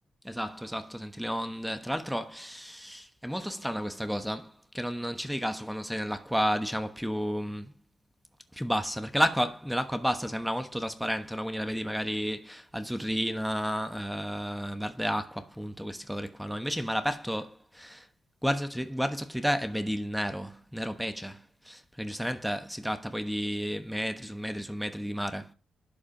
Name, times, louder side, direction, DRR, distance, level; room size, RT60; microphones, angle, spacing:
voice 1, 0.2-7.7 8.5-18.1 18.4-25.5, equal, ahead, 1.1 m, -32 dB
11.5 x 4.9 x 3.9 m
cardioid pair, 70°, 0 cm